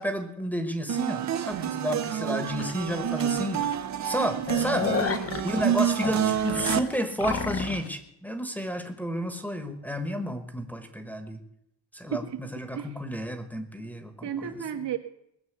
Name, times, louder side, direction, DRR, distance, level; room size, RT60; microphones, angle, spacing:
voice 1, 0.0-3.7 4.0-5.0 5.4-11.4 11.9-14.6, equal, 5° left, 4 dB, 1.2 m, -31 dB
sound 1, 0.9-6.8, right 9 dB, 40° right, 0.7 m, -28 dB
sound 2, 2.6-2.7 3.2-3.3 3.6-3.8 4.1-7.9, left 6 dB, 30° left, 1.0 m, -32 dB
voice 2, 4.9-5.4 12.1-12.4 12.7-13.0 14.2-15.0, right 8 dB, 70° right, 5 dB, 1.7 m, -34 dB
19.5 x 6.9 x 8.1 m, 0.77 s
cardioid pair, 175°, 44 cm